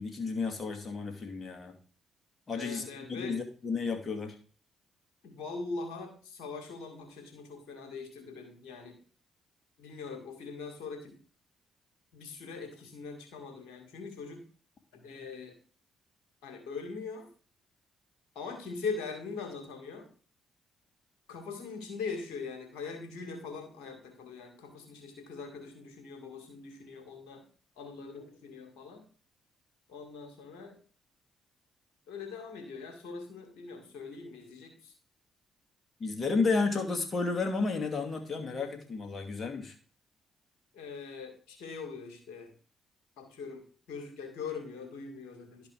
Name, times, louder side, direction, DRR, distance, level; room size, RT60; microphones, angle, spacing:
voice 1, 0.0-1.8 2.5-4.3 36.0-39.7, left 4 dB, 40° left, 4 dB, 2.4 m, -32 dB
voice 2, 2.5-3.4 5.2-9.0 9.8-11.2 12.1-14.5 14.9-15.6 16.4-17.3 18.3-20.1 21.3-27.4 27.8-29.0 29.9-30.8 32.1-34.9 40.7-42.5 43.2-45.7, left 4 dB, 75° left, 5 dB, 2.3 m, -42 dB
11.5 x 5.2 x 4.9 m, 0.40 s
hypercardioid pair, 45°, 0 cm